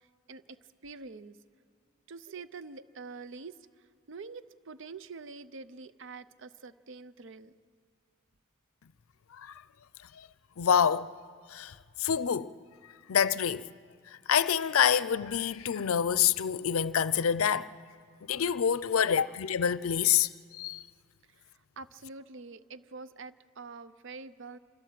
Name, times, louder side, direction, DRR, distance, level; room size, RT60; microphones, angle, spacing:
voice 1, 0.8-1.4 2.1-3.6 4.1-7.5 21.8-24.6, right 4 dB, 60° right, 0.6 m, -45 dB
voice 2, 10.6-11.1 11.5-11.7 12.0-12.5 13.1-13.7 14.3-17.7 18.3-20.8, left 8 dB, 80° left, 0.5 m, -26 dB
26.0 x 14.5 x 7.5 m
head